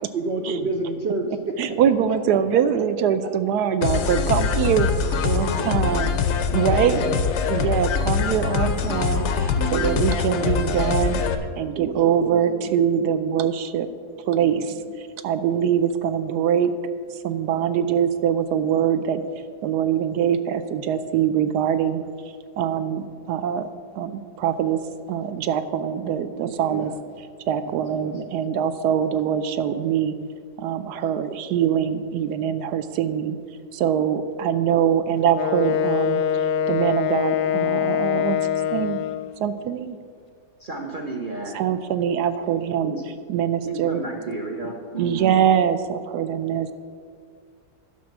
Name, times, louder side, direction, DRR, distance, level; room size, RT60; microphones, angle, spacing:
voice 1, 0.1-1.5 2.7-2.8 5.4-5.9 6.9-7.1 9.5-10.1 11.6-11.9 12.2-12.7 26.4-26.9 27.7-28.1 42.5-42.7 44.6-44.7, right 3 dB, 90° right, 2 dB, 0.5 m, -30 dB
voice 2, 1.6-4.9 5.2-6.1 6.5-7.0 7.5-11.2 11.6-13.9 14.3-16.7 17.1-19.2 19.6-22.0 22.6-23.7 23.9-24.8 25.1-26.9 27.5-30.1 30.6-33.4 33.7-36.2 36.7-38.4 38.7-39.0 39.4-40.0 41.5-42.9 43.3-44.0 45.0-46.7, right 9 dB, 70° right, 11 dB, 1.0 m, -23 dB
sound 1, 3.8-11.4, left 6 dB, 70° left, 0.6 m, -23 dB
Wind instrument woodwind instrument, 35.3-39.4, left 9 dB, 90° left, 1.3 m, -24 dB
voice 3, 40.6-41.6 42.8-43.0 43.6-45.4, right 3 dB, 40° right, 0 dB, 0.7 m, -32 dB
11.5 x 6.2 x 6.0 m, 2.1 s
omnidirectional pair, 2.0 m